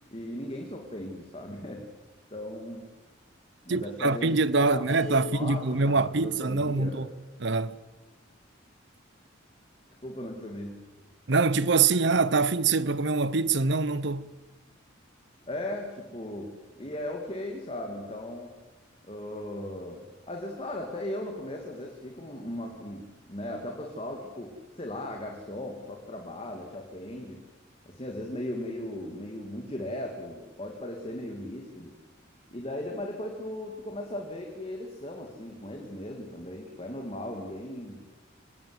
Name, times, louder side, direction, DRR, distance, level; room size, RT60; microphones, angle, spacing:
voice 1, 0.1-1.9 2.3-2.9 3.6-7.1 10.0-10.8 15.5-18.6 19.0-27.4 27.9-32.0 32.5-38.1, left 1 dB, 30° left, 2.7 m, -37 dB
voice 2, 3.7-7.1 7.4-7.8 11.3-14.3, right 4 dB, 60° right, 0.9 m, -24 dB
sound 1, 4.9-7.2, equal, 15° left, 7.7 m, -60 dB
26.5 x 19.0 x 8.0 m
head